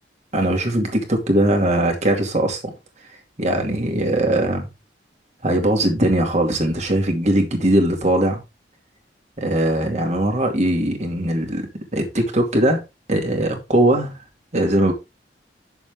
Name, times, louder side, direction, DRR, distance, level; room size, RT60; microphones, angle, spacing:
voice 1, 0.3-2.6 3.4-4.7 5.4-8.4 9.4-11.7 11.9-12.8 13.1-14.2 14.5-14.9, right 1 dB, 40° right, 2.5 m, -20 dB
8.9 x 7.1 x 3.6 m
head